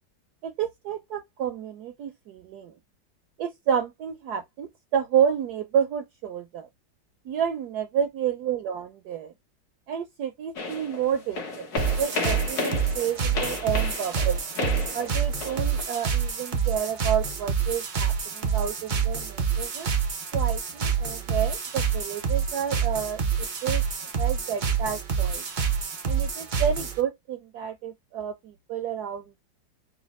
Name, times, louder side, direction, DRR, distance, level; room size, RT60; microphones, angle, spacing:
voice 1, 0.4-2.7 3.4-6.7 7.2-9.3 9.9-11.7 12.0-14.4 14.9-19.9 20.3-23.8 24.2-25.4 26.1-29.4, right 8 dB, 70° right, 1.0 m, -30 dB
sound 1, 10.6-15.8, left 3 dB, 60° left, 1.6 m, -33 dB
sound 2, 11.8-27.0, right 6 dB, 90° right, 0.4 m, -27 dB
4.0 x 2.3 x 4.1 m
omnidirectional pair, 2.0 m